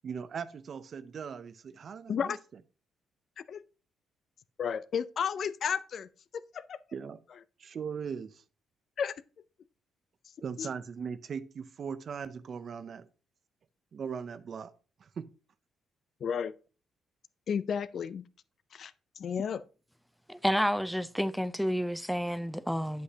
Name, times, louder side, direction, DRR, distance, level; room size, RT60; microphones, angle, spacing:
voice 1, 0.0-2.4 6.9-7.2 7.6-8.4 10.4-13.1 13.9-14.7 15.0-15.3, right 6 dB, 50° right, 0.6 m, -39 dB
voice 2, 4.6-6.1 6.5-6.8 9.0-9.1 10.6-10.7 16.2-16.5 17.5-18.2 18.7-19.6, left 7 dB, 55° left, 0.4 m, -32 dB
voice 3, 20.3-23.0, equal, ahead, 0.5 m, -30 dB
8.4 x 7.7 x 2.8 m
cardioid pair, 90°, 0 cm